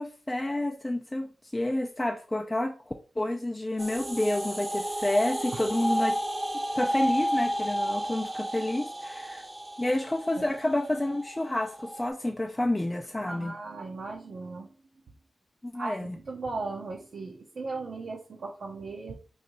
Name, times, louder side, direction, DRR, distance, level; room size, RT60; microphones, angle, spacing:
voice 1, 0.0-6.2 6.7-9.4 9.8-13.5 15.6-16.2, left 1 dB, 20° left, 0.4 m, -29 dB
sound 1, 3.8-12.1, equal, 25° right, 0.6 m, -31 dB
voice 2, 13.3-14.8 15.7-19.1, right 3 dB, 70° right, 0.6 m, -37 dB
3.1 x 2.7 x 4.0 m
cardioid pair, 50°, 0 cm